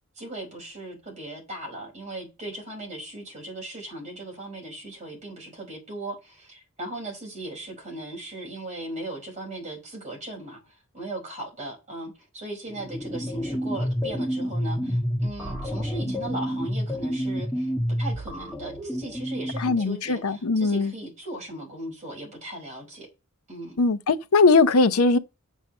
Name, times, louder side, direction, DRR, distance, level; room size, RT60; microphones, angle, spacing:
voice 1, 0.2-10.6 10.9-17.7 18.0-23.1 23.5-23.8, right 1 dB, 35° right, 5.2 m, -38 dB
sound 1, 12.7-19.8, equal, ahead, 2.1 m, -29 dB
voice 2, 19.6-20.9 23.8-25.2, left 3 dB, 85° left, 0.7 m, -20 dB
7.2 x 5.5 x 6.5 m
head